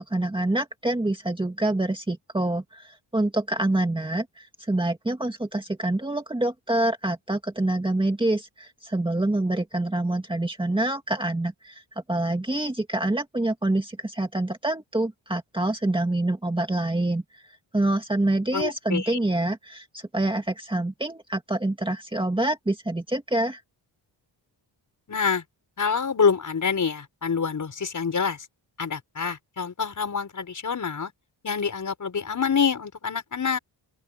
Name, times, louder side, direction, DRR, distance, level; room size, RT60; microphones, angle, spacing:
voice 1, 0.0-11.8 12.1-17.5 17.7-23.6, right 2 dB, 10° right, 2.1 m, -26 dB
voice 2, 18.5-19.2 25.1-25.4 25.8-28.5 28.8-31.1 31.4-33.6, left 6 dB, 40° left, 6.0 m, -26 dB
open air
wide cardioid pair, 160°, 46 cm